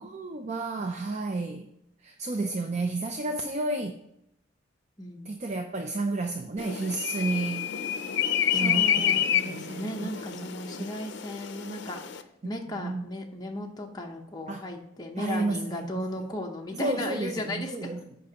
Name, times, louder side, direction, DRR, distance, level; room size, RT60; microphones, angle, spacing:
voice 1, 0.0-1.7 2.0-4.0 5.3-7.7 8.5-10.5 10.8-10.9 12.8-13.1 14.5-14.6 15.2-15.9 16.7-18.0, right 2 dB, 35° right, 6 dB, 0.5 m, -32 dB
voice 2, 5.0-5.3 8.5-12.0 12.4-18.0, left 1 dB, 20° left, 0 dB, 0.8 m, -36 dB
sound 1, 6.6-12.2, left 9 dB, 65° left, 0.6 m, -29 dB
14.0 x 5.3 x 2.9 m, 0.82 s
head